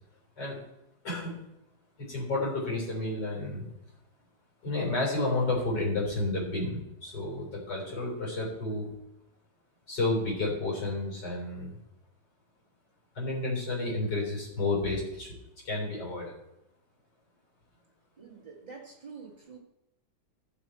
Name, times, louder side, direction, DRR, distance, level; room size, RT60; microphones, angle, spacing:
voice 1, 1.0-1.4 2.0-3.7 4.6-8.9 9.9-11.7 13.2-15.3 15.6-16.3, left 2 dB, 70° left, -2 dB, 4.2 m, -31 dB
voice 2, 18.2-19.6, right 5 dB, 25° right, -2 dB, 1.9 m, -47 dB
14.0 x 5.7 x 4.5 m, 0.85 s
omnidirectional pair, 1.9 m